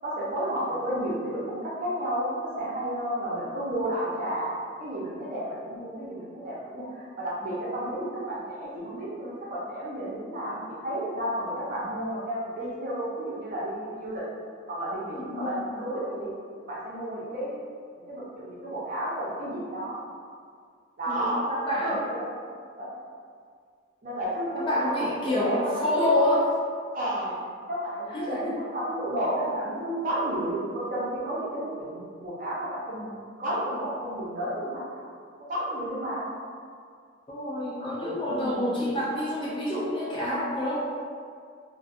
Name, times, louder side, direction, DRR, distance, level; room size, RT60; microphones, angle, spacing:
voice 1, 0.0-4.5 4.8-14.2 14.7-16.3 16.7-17.6 18.1-20.0 21.0-21.4 21.8-22.4 22.7-22.9 24.0-26.3 26.9-27.3 27.7-35.1 35.5-36.2 38.2-38.8, right 1 dB, 45° right, -7 dB, 0.6 m, -32 dB
voice 2, 15.1-15.5 21.1-22.0 24.5-26.4 28.1-28.6 37.3-40.8, left 1 dB, 25° left, -6 dB, 0.4 m, -27 dB
2.4 x 2.2 x 2.5 m, 2.1 s
head